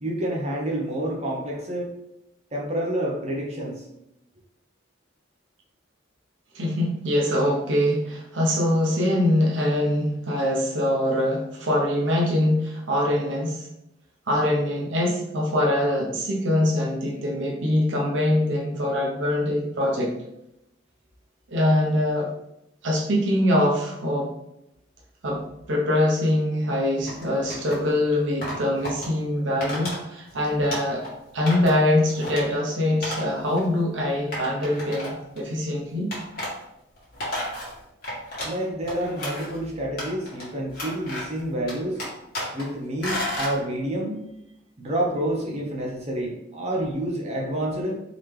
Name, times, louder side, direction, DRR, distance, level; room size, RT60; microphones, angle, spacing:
voice 1, 0.0-1.9 2.5-3.8 38.4-42.0 42.5-44.2 44.8-47.9, right 1 dB, 35° right, -1 dB, 0.7 m, -28 dB
voice 2, 6.5-13.7 14.3-20.1 21.5-22.3 22.8-24.3 25.2-31.0 31.3-36.1, left 1 dB, 75° right, -2 dB, 0.8 m, -23 dB
sound 1, 27.1-27.8 28.4-29.1 29.6-30.0 30.3-31.1 31.5-31.8 32.1-32.4 33.0-33.2 33.5-33.6 34.3-35.4 36.1-36.5 37.0-38.6 38.9-39.6 40.0-40.4 40.7-41.4 41.7-42.6 43.0-43.5, left 1 dB, 50° left, 1.5 m, -32 dB
3.9 x 2.9 x 3.2 m, 0.84 s
head